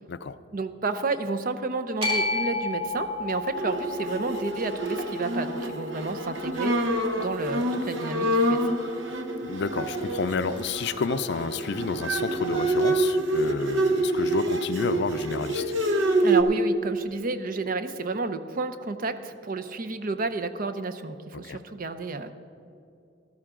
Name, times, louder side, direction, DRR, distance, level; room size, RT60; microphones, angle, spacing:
voice 1, 0.5-6.8 7.2-8.6 16.2-22.3, right 3 dB, 45° right, 10 dB, 0.6 m, -31 dB
sound 1, 2.0-8.2, left 2 dB, 30° right, 2.5 m, -33 dB
Bowed string instrument, 3.5-16.4, right 2 dB, 70° right, 1.0 m, -27 dB
voice 2, 9.4-15.7 21.4-21.6, left 4 dB, 60° left, 13 dB, 0.4 m, -30 dB
14.0 x 12.5 x 3.7 m, 2.6 s
head